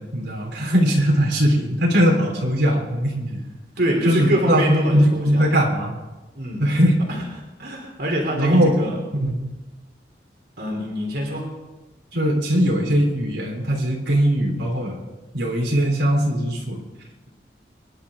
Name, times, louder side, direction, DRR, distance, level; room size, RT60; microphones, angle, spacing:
voice 1, 0.0-3.4 4.0-5.9 6.6-6.9 8.4-8.8 9.1-9.5 12.1-15.0 15.3-16.8, equal, 75° right, -1 dB, 3.4 m, -20 dB
voice 2, 3.8-5.4 6.3-6.6 7.6-9.0 10.6-11.5, equal, 60° right, 0 dB, 3.3 m, -25 dB
26.0 x 11.5 x 3.7 m, 1.1 s
head